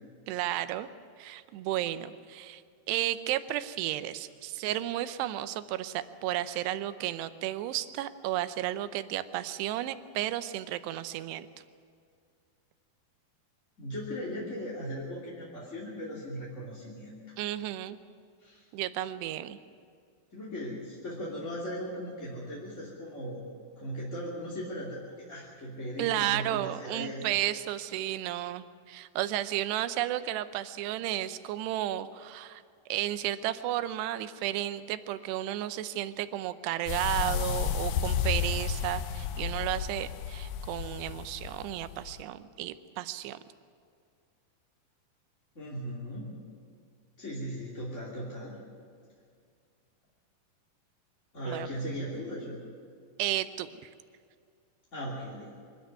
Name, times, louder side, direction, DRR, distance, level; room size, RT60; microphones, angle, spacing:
voice 1, 0.3-0.9 1.2-2.6 2.9-11.5 17.4-18.0 18.7-19.6 26.0-32.6 32.9-43.4 51.5-51.7 53.2-53.9, right 13 dB, 80° right, 12 dB, 2.8 m, -33 dB
voice 2, 13.8-17.4 18.4-18.6 20.3-23.4 23.8-25.0 25.3-27.4 45.5-46.3 47.2-48.6 51.3-52.6 54.9-55.5, equal, 20° left, -6 dB, 2.5 m, -38 dB
sound 1, 36.9-42.2, left 7 dB, 75° left, 2.7 m, -32 dB
24.0 x 13.0 x 9.5 m, 2.2 s
omnidirectional pair, 5.1 m